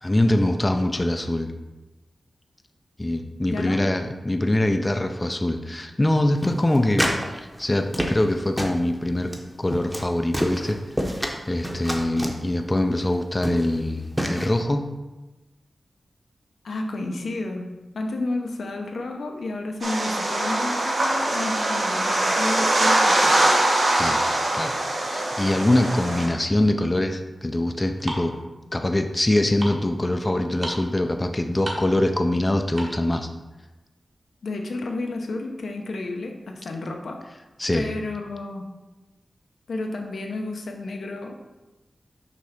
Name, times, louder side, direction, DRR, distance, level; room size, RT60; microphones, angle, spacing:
voice 1, 0.0-1.5 3.0-11.1 11.5-14.8 23.9-24.2 24.5-24.8 25.1-28.3 28.7-33.3 37.6-37.9, left 1 dB, 20° left, 6 dB, 0.4 m, -23 dB
voice 2, 3.5-3.8 16.6-23.5 34.4-37.2 37.7-38.7 39.7-41.3, left 2 dB, 85° left, 3 dB, 0.8 m, -31 dB
sound 1, 6.4-7.3 7.5-8.3 8.6-8.8 9.3-9.4 9.7-10.1 10.3-11.3 11.6-12.4 13.0-13.1 13.4-13.8 14.2-14.5, equal, 5° right, 0.8 m, -27 dB
sound 2, 19.8-26.3, right 1 dB, 70° right, 1.3 m, -22 dB
sound 3, 26.9-33.1, right 1 dB, 45° right, 1.2 m, -37 dB
6.2 x 3.3 x 5.8 m, 1.1 s
wide cardioid pair, 100°, 0 cm